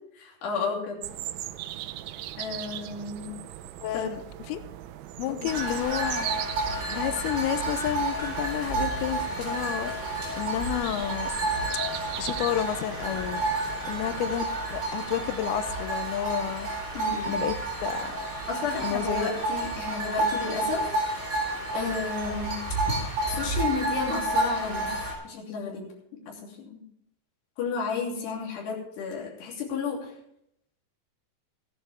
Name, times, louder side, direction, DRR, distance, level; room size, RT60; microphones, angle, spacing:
voice 1, 0.3-1.0 2.4-3.3 3.9-4.0 5.4-5.5 16.9-17.4 18.5-20.9 21.7-22.6 23.3-24.9 25.2-25.8 26.3-26.4 26.7-26.8 27.6-30.1, left 5 dB, 65° left, -2 dB, 4.9 m, -32 dB
sound 1, 1.0-14.4, right 13 dB, 85° right, 2.3 m, -39 dB
voice 2, 3.8-4.6 5.2-6.3 6.9-9.9 10.4-11.3 12.2-13.4 13.9-16.7 17.3-17.5 17.8-18.1 18.8-19.3, left 12 dB, 90° left, 10 dB, 2.2 m, -30 dB
sound 2, 5.5-25.1, right 2 dB, 20° right, 4.2 m, -30 dB
16.0 x 11.0 x 3.5 m, 0.74 s
omnidirectional pair, 5.4 m